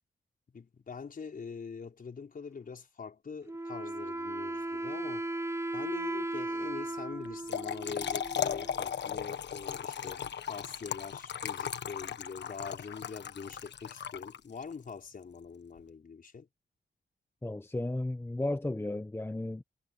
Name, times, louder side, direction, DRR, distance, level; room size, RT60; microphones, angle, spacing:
voice 1, 0.5-5.3 5.7-16.5, left 5 dB, 45° left, 5.2 m, -44 dB
Wind instrument woodwind instrument, 3.5-9.0, right 2 dB, 15° right, 1.5 m, -37 dB
Trickle dribble / Fill (with liquid), 7.2-14.7, left 8 dB, 65° left, 1.4 m, -37 dB
voice 2, 17.4-19.6, left 2 dB, 10° left, 1.1 m, -34 dB
cardioid pair, 95°, 19 cm